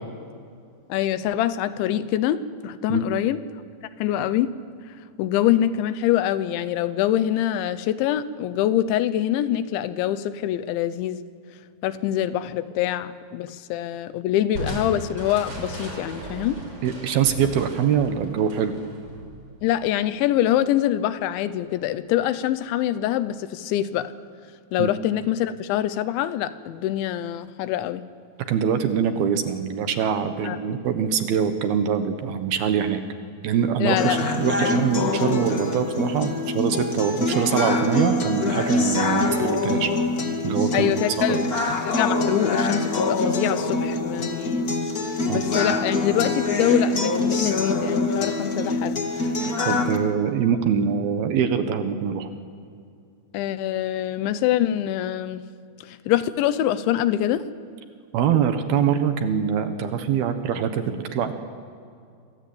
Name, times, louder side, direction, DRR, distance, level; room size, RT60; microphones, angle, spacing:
voice 1, 0.9-3.4 4.0-4.6 5.2-11.2 11.8-16.6 19.6-24.1 24.7-28.0 30.4-30.6 33.8-34.2 34.6-34.8 40.7-41.4 41.8-44.7 45.3-49.0 53.3-55.4 55.8-57.5, left 12 dB, 90° left, 13 dB, 3.3 m, -24 dB
voice 2, 2.9-3.2 16.8-18.7 24.8-24.9 28.5-33.0 33.4-39.9 40.4-40.9 41.2-41.5 45.3-45.4 49.7-52.3 58.1-61.3, right 7 dB, 65° right, 8 dB, 2.9 m, -24 dB
Crushing, 14.5-19.9, right 1 dB, 25° right, 5.5 m, -36 dB
sound 1, 34.0-50.0, left 2 dB, 45° left, 1.2 m, -24 dB
26.5 x 25.5 x 8.7 m, 2.4 s
omnidirectional pair, 5.2 m